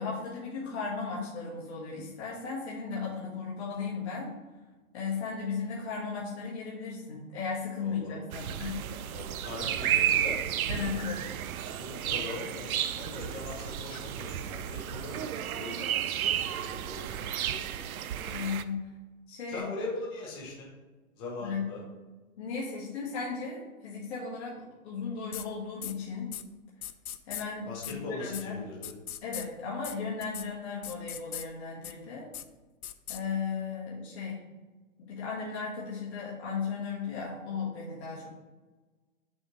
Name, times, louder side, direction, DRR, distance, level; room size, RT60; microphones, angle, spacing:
voice 1, 0.0-4.3 4.9-8.8 10.7-11.2 18.2-18.9 19.3-19.7 21.4-21.9 22.4-26.3 27.3-28.5 29.2-32.3 33.1-34.4 35.0-38.3, left 5 dB, 50° left, -7 dB, 2.0 m, -36 dB
voice 2, 7.8-8.2 9.1-10.4 11.8-17.8 19.5-20.7 21.2-21.8 27.7-28.9, left 2 dB, 25° left, -5 dB, 1.7 m, -41 dB
sound 1, 8.3-18.6, right 10 dB, 80° right, 0.6 m, -32 dB
sound 2, 25.3-25.5 25.8-25.9 26.3-26.4 26.8-27.4 27.8-27.9 28.3-28.4 28.8-29.5 29.8-29.9 30.2-30.5 30.8-31.5 31.8-31.9 32.3-32.4 32.8-33.2, left 10 dB, 85° left, 0.7 m, -39 dB
6.4 x 5.7 x 3.3 m, 1.2 s
hypercardioid pair, 165°, 42 cm